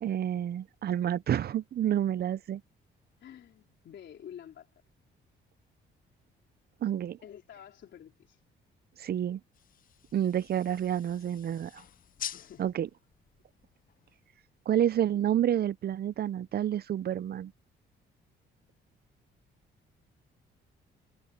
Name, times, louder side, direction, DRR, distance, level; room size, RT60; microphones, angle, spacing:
voice 1, 0.0-2.6 6.8-7.2 9.0-9.4 10.1-11.8 12.6-12.9 14.7-17.5, right 10 dB, 50° right, 0.6 m, -29 dB
voice 2, 3.2-4.7 7.2-8.4 12.3-12.7, left 9 dB, 65° left, 3.8 m, -49 dB
sound 1, 9.5-14.4, left 9 dB, 45° left, 0.5 m, -46 dB
cardioid pair, 90°, 20 cm